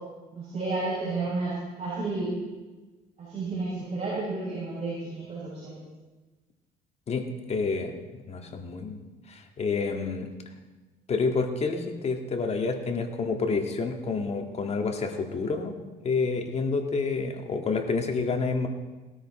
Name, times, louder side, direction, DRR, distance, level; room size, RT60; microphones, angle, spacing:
voice 1, 0.3-2.3 3.2-5.8, right 3 dB, 35° right, -9 dB, 6.7 m, -31 dB
voice 2, 7.1-7.9 8.3-9.0 9.3-10.3 11.1-15.7 16.0-18.7, left 4 dB, 40° left, 4 dB, 1.9 m, -28 dB
19.0 x 13.0 x 4.3 m, 1.2 s
cardioid pair, 110°, 17 cm